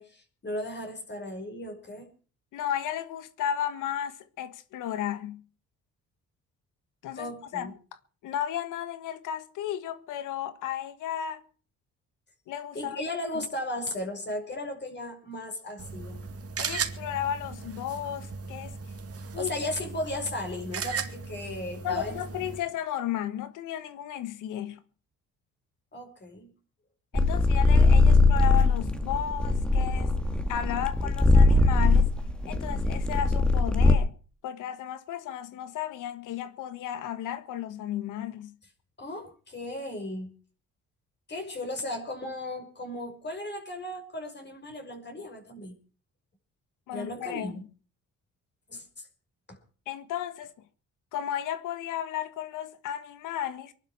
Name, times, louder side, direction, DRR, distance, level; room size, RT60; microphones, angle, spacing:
voice 1, 0.0-2.1 7.2-7.7 12.7-16.2 19.4-22.2 25.9-26.5 39.0-40.3 41.3-45.7 46.9-47.6 48.7-49.1 49.5-49.6, left 1 dB, 35° left, 5.7 m, -36 dB
voice 2, 2.5-5.4 7.0-7.7 8.2-11.4 12.5-13.0 16.6-18.8 19.3-19.5 21.8-24.8 27.1-30.1 30.5-32.1 32.4-34.1 34.4-38.5 46.9-47.6 49.9-50.5 51.1-53.7, left 10 dB, 90° left, 1.6 m, -34 dB
sound 1, 15.8-22.6, right 5 dB, 50° right, 2.4 m, -37 dB
sound 2, 27.1-33.9, left 3 dB, 5° left, 2.2 m, -21 dB
23.5 x 12.0 x 4.8 m
cardioid pair, 90°, 30 cm